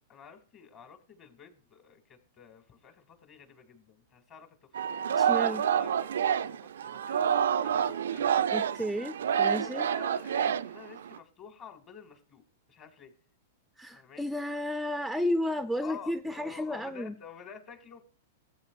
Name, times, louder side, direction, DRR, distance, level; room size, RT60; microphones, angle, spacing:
voice 1, 0.1-4.6 5.1-8.5 9.2-12.4 12.7-13.1 13.9-14.3 15.2-15.4 15.8-18.0, left 7 dB, 35° left, 7 dB, 2.2 m, -50 dB
Singing, 4.7-11.2, right 8 dB, 70° right, 0.4 m, -28 dB
voice 2, 5.1-5.6 8.5-9.9 13.8-17.1, left 1 dB, ahead, 9 dB, 0.5 m, -32 dB
19.5 x 8.1 x 2.5 m, 0.42 s
hypercardioid pair, 105°, 0 cm